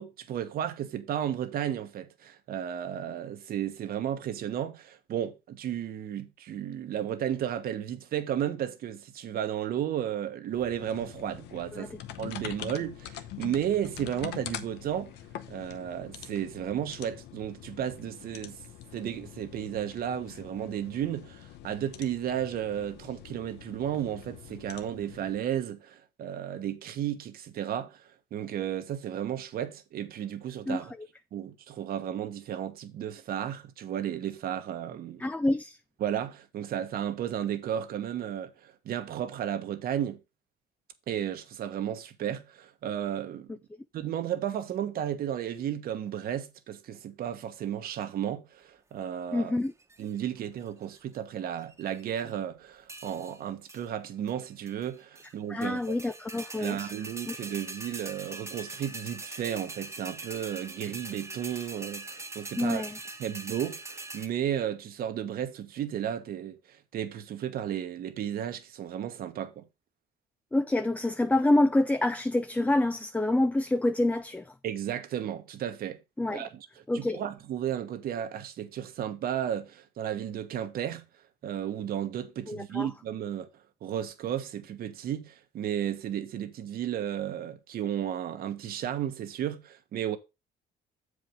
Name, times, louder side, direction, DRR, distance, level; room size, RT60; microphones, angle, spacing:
voice 1, 0.0-11.9 12.2-15.1 15.5-18.6 18.9-28.0 28.3-30.9 31.3-35.2 36.0-40.2 41.1-43.5 43.9-49.6 50.0-56.0 56.6-62.9 63.2-69.6 74.6-76.0 76.3-76.7 76.9-81.0 81.4-83.5 83.8-90.2, right 10 dB, 60° right, 1.3 m, -33 dB
sound 1, 10.5-25.4, left 11 dB, 85° left, 1.0 m, -44 dB
voice 2, 35.2-35.8 49.3-49.7 55.5-56.9 57.3-57.4 62.6-63.0 70.5-74.5 76.2-76.5 76.9-77.2 82.5-82.9, left 2 dB, 10° left, 0.5 m, -27 dB
sound 2, 49.6-50.1 50.7-51.2 51.6-52.3 52.9-53.4 53.7-53.9 54.3-54.4 54.7-55.3 55.6-64.3, right 2 dB, 15° right, 1.3 m, -42 dB
7.7 x 5.0 x 5.2 m
cardioid pair, 110°, 17 cm